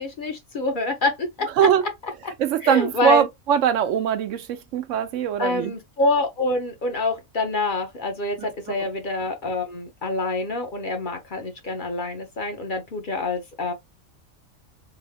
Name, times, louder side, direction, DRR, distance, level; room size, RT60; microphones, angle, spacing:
voice 1, 0.0-1.5 2.6-3.2 5.4-13.7, left 2 dB, 50° left, 0.8 m, -26 dB
voice 2, 2.4-5.7 8.4-8.9, right 9 dB, 80° right, 1.0 m, -22 dB
3.4 x 2.1 x 3.4 m
omnidirectional pair, 1.3 m